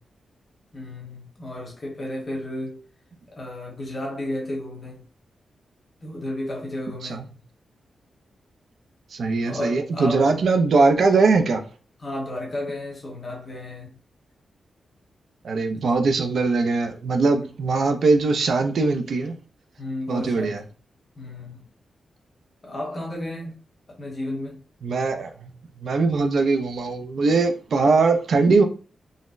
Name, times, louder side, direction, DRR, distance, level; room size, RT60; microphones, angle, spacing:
voice 1, 0.7-2.8 3.3-5.0 6.0-7.3 9.4-10.3 12.0-14.0 17.3-17.4 19.8-20.6 21.2-21.6 22.6-23.6 23.9-24.6, left 1 dB, 25° left, 1.0 m, -33 dB
voice 2, 9.1-11.6 15.4-19.3 20.1-20.6 24.8-25.5 25.8-28.6, right 3 dB, 60° right, 0.4 m, -21 dB
3.9 x 2.0 x 2.4 m
wide cardioid pair, 170°, 0 cm